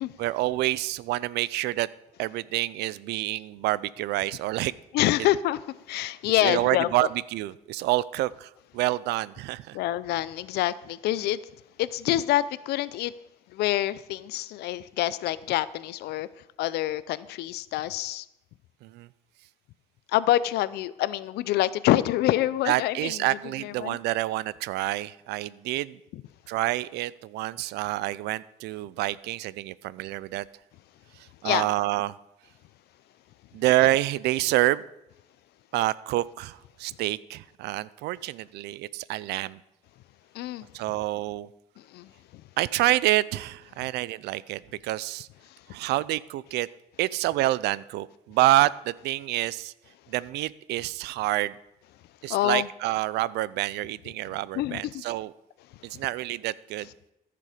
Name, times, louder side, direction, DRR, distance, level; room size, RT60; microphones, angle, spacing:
voice 1, 0.2-1.9 2.2-4.7 6.4-9.8 18.8-19.1 22.7-26.0 26.5-30.4 31.4-32.2 33.5-34.8 35.7-39.6 40.7-41.5 42.6-45.3 45.7-46.7 47.0-49.7 50.1-51.6 52.2-55.3 55.9-56.9, right 16 dB, 80° right, 0.5 m, -27 dB
voice 2, 4.9-7.1 9.7-11.4 11.8-13.1 13.5-16.3 16.6-18.3 20.1-23.2 23.6-24.0 26.1-26.2 31.4-31.6 40.3-40.7 41.8-42.4 52.3-52.7 54.5-55.0, left 14 dB, 75° left, 0.5 m, -26 dB
14.5 x 6.8 x 5.0 m
cardioid pair, 110°, 17 cm